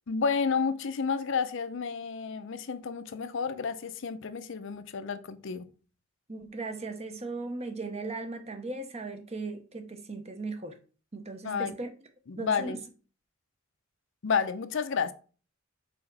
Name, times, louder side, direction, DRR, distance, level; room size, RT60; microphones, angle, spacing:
voice 1, 0.1-5.6 11.4-11.7 12.3-12.8 14.2-15.1, left 5 dB, 60° left, 0.5 m, -31 dB
voice 2, 6.3-10.7 11.1-11.9 12.4-12.8, right 3 dB, 30° right, 0.8 m, -37 dB
4.8 x 4.2 x 5.3 m
head